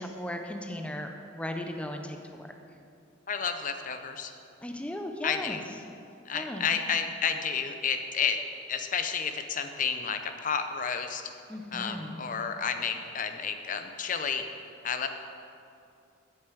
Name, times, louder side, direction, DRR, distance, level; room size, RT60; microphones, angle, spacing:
voice 1, 0.0-2.5 4.6-5.6 6.3-6.7 11.5-12.2, left 1 dB, 5° left, 4 dB, 0.6 m, -37 dB
voice 2, 3.3-4.3 5.2-5.7 6.3-8.4 8.7-11.2 11.7-14.4 14.8-15.1, left 6 dB, 45° left, 7 dB, 0.7 m, -31 dB
8.0 x 6.6 x 8.2 m, 2.5 s
head